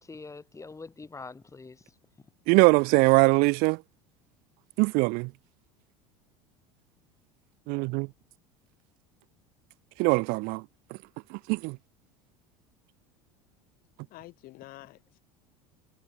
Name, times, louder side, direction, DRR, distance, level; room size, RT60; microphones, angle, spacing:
voice 1, 0.0-1.8, left 4 dB, 15° left, 4.9 m, -44 dB
voice 2, 2.5-3.8 4.8-5.3 7.7-8.1 10.0-10.6 11.3-11.8, right 29 dB, 60° right, 0.4 m, -22 dB
voice 3, 14.0-15.2, left 18 dB, 55° left, 6.4 m, -48 dB
hypercardioid pair, 85°, 18 cm